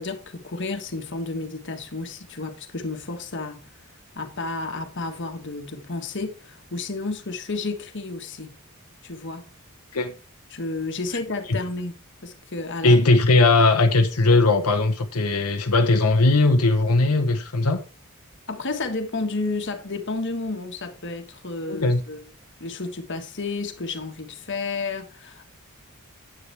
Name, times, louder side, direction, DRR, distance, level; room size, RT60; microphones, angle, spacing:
voice 1, 0.0-3.7 4.1-8.6 9.0-9.5 10.5-13.0 18.5-22.2 22.6-25.4, left 3 dB, 55° left, 1.5 m, -31 dB
voice 2, 12.8-17.8 21.7-22.0, left 2 dB, 90° left, 1.0 m, -19 dB
9.7 x 8.9 x 3.4 m
head